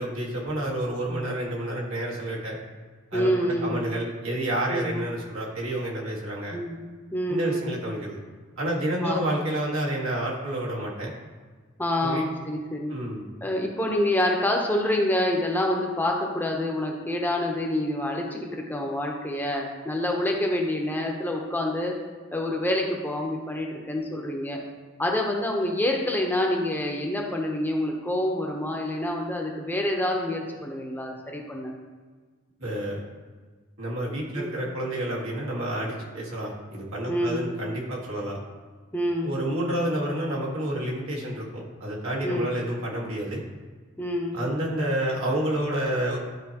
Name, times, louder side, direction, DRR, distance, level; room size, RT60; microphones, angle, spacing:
voice 1, 0.0-2.6 3.1-3.3 3.6-6.6 7.3-8.2 8.6-11.1 12.0-12.2 12.9-13.2 32.6-33.0 33.8-38.4 39.2-43.4 44.3-46.2, right 1 dB, 85° right, -3 dB, 1.8 m, -29 dB
voice 2, 3.1-3.8 4.7-5.0 6.5-6.8 7.1-7.7 9.0-9.4 11.8-13.0 13.4-22.0 22.3-24.6 25.0-31.7 34.3-34.5 37.1-37.5 38.9-39.3 42.2-42.5 44.0-44.4, left 1 dB, 10° left, 0 dB, 0.8 m, -27 dB
11.5 x 4.3 x 2.9 m, 1.4 s
head